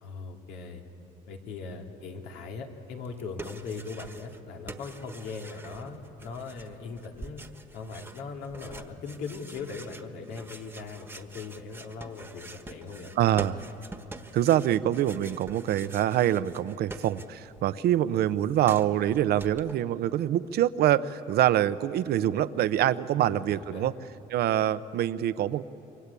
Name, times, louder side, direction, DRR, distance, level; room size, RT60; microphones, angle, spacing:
voice 1, 0.0-0.8 1.3-7.5 7.7-13.1 23.2-23.9, left 4 dB, 85° left, 2 dB, 2.7 m, -39 dB
sound 1, 3.0-4.4 4.7-17.6 17.9-19.7, right 2 dB, 10° right, 1.3 m, -46 dB
voice 2, 13.2-13.6 14.3-23.9 24.3-25.6, right 12 dB, 70° right, 14 dB, 0.8 m, -25 dB
27.5 x 23.5 x 8.4 m, 2.9 s
cardioid pair, 110°, 17 cm